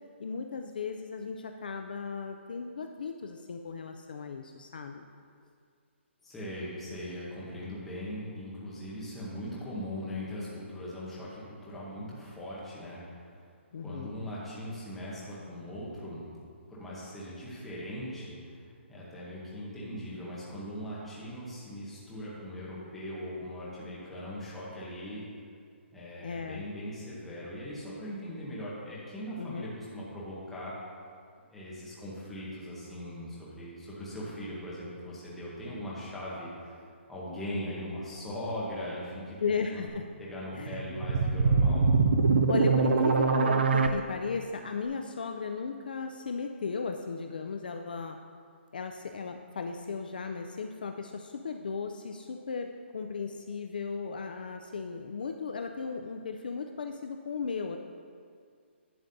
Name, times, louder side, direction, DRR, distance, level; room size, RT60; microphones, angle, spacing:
voice 1, 0.2-5.1 13.7-14.2 26.2-26.6 29.4-29.7 39.4-40.1 40.5-40.8 42.5-48.2 48.7-57.8, left 5 dB, 45° left, 5 dB, 0.3 m, -36 dB
voice 2, 6.2-13.4 13.8-16.2 16.7-18.6 18.9-25.2 25.9-30.7 31.5-36.7 37.1-39.4 39.7-39.9 40.2-41.9, equal, 5° left, -8 dB, 0.8 m, -40 dB
sound 1, 40.6-43.9, right 4 dB, 55° right, 0.5 m, -23 dB
11.0 x 7.1 x 2.6 m, 2.1 s
hypercardioid pair, 180°, 7 cm